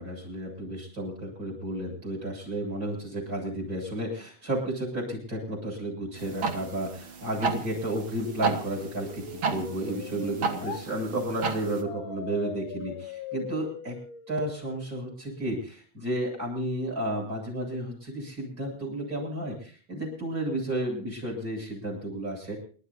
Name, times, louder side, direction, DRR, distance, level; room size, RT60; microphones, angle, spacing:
voice 1, 0.0-14.0 14.3-22.6, right 1 dB, 20° right, -1 dB, 8.3 m, -32 dB
sound 1, 6.2-11.8, right 5 dB, 60° right, 1.3 m, -33 dB
sound 2, 8.0-10.8 11.8-14.9, left 7 dB, 60° left, 2.6 m, -41 dB
28.5 x 13.5 x 2.7 m, 0.40 s
omnidirectional pair, 4.7 m